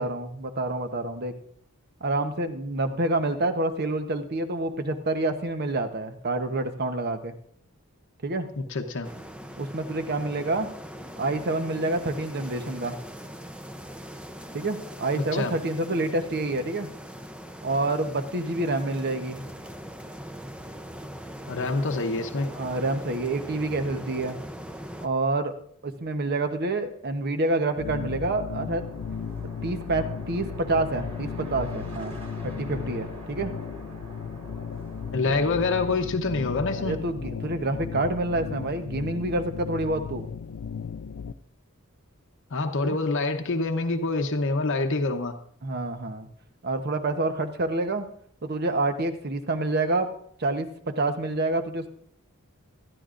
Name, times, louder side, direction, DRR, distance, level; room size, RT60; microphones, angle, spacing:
voice 1, 0.0-1.3 2.0-7.3 8.2-8.5 9.6-10.7 11.2-13.0 14.5-16.9 17.6-19.4 22.5-24.4 25.0-25.6 25.8-28.8 29.6-32.1 32.4-33.6 36.8-40.3 42.8-43.0 45.6-46.3 46.6-48.1 48.4-50.1 50.4-51.9, right 2 dB, 50° right, 8 dB, 1.0 m, -28 dB
voice 2, 8.6-9.1 15.1-15.5 21.5-22.5 35.1-37.0 42.5-45.3, left 3 dB, 60° left, 4 dB, 0.8 m, -26 dB
sound 1, 9.0-25.1, equal, 5° right, 0.6 m, -41 dB
sound 2, 27.6-36.6, right 1 dB, 30° right, 2.9 m, -45 dB
sound 3, 27.8-41.3, left 6 dB, 85° left, 0.5 m, -36 dB
19.0 x 13.0 x 2.5 m, 0.63 s
head